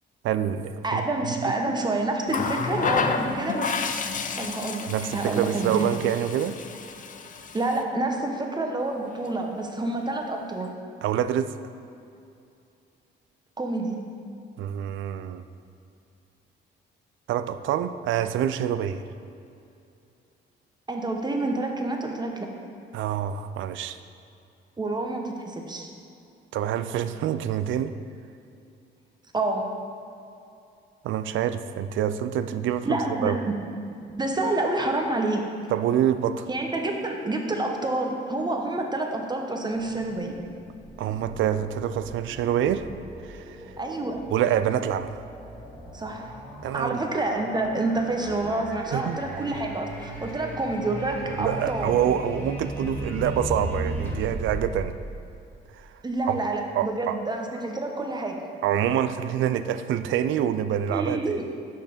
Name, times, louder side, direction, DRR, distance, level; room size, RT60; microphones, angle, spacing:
voice 1, 0.2-1.0 1.4-1.5 4.9-6.6 11.0-11.5 14.6-15.4 17.3-19.0 22.9-24.0 26.5-27.9 31.0-33.4 35.7-36.5 41.0-42.9 43.2-43.7 44.3-45.2 46.6-47.0 48.9-49.2 51.2-54.9 55.7-55.9 56.3-56.4 56.7-57.2 58.6-61.2, right 10 dB, 75° right, 12 dB, 0.4 m, -26 dB
voice 2, 0.8-3.7 4.4-5.9 7.5-10.7 13.6-14.0 20.9-22.5 24.8-25.9 29.3-29.6 32.9-33.6 34.0-35.4 36.5-40.3 43.8-44.2 45.9-46.3 46.7-52.1 56.0-58.4 60.9-61.5, right 2 dB, 20° right, 2 dB, 0.9 m, -28 dB
Water tap faucet, 2.3-7.8 9.0-9.2, left 5 dB, 40° left, 0.5 m, -30 dB
sound 1, 39.7-55.9, right 1 dB, 10° left, 1.8 m, -37 dB
6.6 x 5.7 x 5.2 m, 2.6 s
cardioid pair, 90°, 20 cm